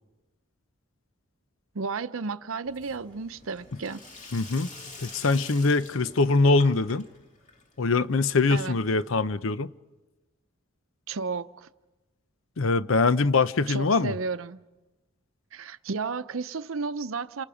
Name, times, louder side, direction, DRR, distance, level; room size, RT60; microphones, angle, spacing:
voice 1, 1.7-4.0 8.5-8.8 11.1-11.7 13.7-14.6 15.5-17.4, right 4 dB, 70° right, 0.7 m, -33 dB
Sink (filling or washing), 2.6-9.4, left 3 dB, 40° left, 2.4 m, -47 dB
voice 2, 4.3-4.7 5.0-7.1 7.8-9.7 12.6-14.1, left 3 dB, 70° left, 0.7 m, -23 dB
29.0 x 27.5 x 5.0 m
head